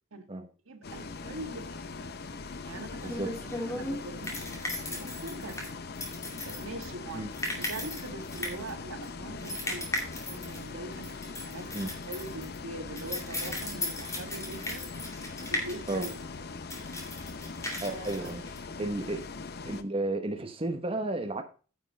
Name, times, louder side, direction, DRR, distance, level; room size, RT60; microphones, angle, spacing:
voice 1, 0.6-2.1 2.6-5.7 6.4-9.9 10.3-11.2 11.4-14.9 15.4-16.1 17.8-18.3, right 2 dB, 80° right, 1.6 m, -43 dB
Bus, 0.8-19.8, left 4 dB, 50° left, 0.7 m, -41 dB
sound 1, 2.3-19.0, left 1 dB, 15° left, 2.4 m, -38 dB
voice 2, 17.8-18.4 18.8-19.2 19.6-21.4, right 2 dB, 25° right, 1.0 m, -32 dB
9.8 x 5.4 x 5.2 m
head